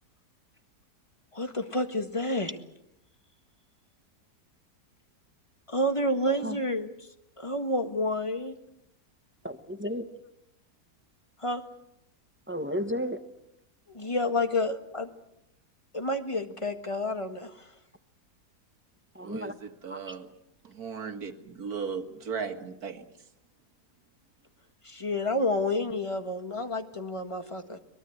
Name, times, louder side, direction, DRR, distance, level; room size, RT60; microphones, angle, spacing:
voice 1, 1.3-2.6 5.7-7.1 7.4-8.5 11.4-11.6 13.9-15.1 15.9-17.7 24.8-27.8, left 1 dB, 20° left, 7 dB, 1.5 m, -29 dB
voice 2, 6.3-6.6 9.4-10.0 12.5-13.2 19.1-19.5 19.9-20.0, equal, 10° right, 8 dB, 1.0 m, -33 dB
voice 3, 19.2-20.3 20.6-23.1, right 6 dB, 65° right, 7 dB, 2.2 m, -37 dB
23.0 x 22.0 x 7.9 m, 0.83 s
omnidirectional pair, 1.7 m